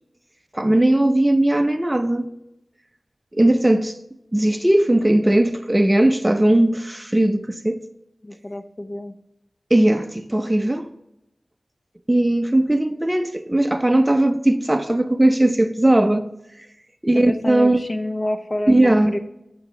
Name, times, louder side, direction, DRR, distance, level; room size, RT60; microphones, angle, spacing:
voice 1, 0.5-2.3 3.3-3.9 4.3-7.8 9.7-10.9 12.1-16.3 17.0-17.9 18.7-19.2, right 1 dB, 15° right, 0.5 m, -18 dB
voice 2, 8.2-9.2 17.1-19.2, left 1 dB, 35° left, 0.6 m, -28 dB
8.3 x 7.7 x 3.2 m
wide cardioid pair, 85°, 0 cm